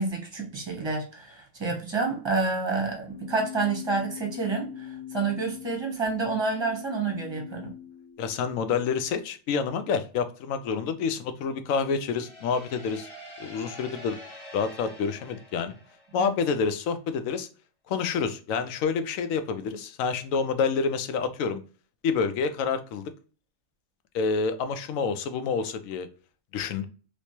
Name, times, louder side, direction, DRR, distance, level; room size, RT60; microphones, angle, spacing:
voice 1, 0.0-7.7 16.2-16.3, right 4 dB, 25° right, 1 dB, 0.9 m, -29 dB
Keyboard (musical), 3.1-9.0, left 10 dB, 60° left, 1.1 m, -42 dB
voice 2, 8.2-13.1 13.4-14.2 14.5-15.8 16.1-17.5 17.9-21.6 22.0-23.1 24.1-26.1 26.5-26.9, left 5 dB, 90° left, 10 dB, 1.0 m, -28 dB
sound 1, 11.8-16.5, left 1 dB, 25° left, 1.2 m, -46 dB
3.2 x 3.1 x 2.6 m, 0.38 s
omnidirectional pair, 1.4 m